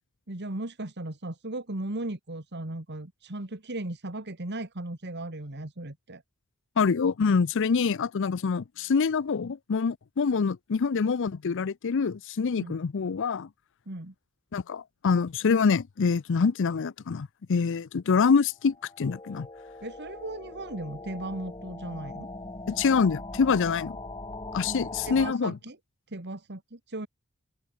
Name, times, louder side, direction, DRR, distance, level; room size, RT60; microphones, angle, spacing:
voice 1, 0.3-6.2 12.6-12.7 13.9-14.1 19.8-22.3 24.7-25.8 26.1-27.1, right 2 dB, 50° right, 2.2 m, -37 dB
voice 2, 6.8-13.5 14.5-19.5 22.7-24.0 24.5-25.5, left 5 dB, 60° left, 0.5 m, -25 dB
sound 1, 18.7-25.3, left 2 dB, 20° left, 6.2 m, -41 dB
open air
head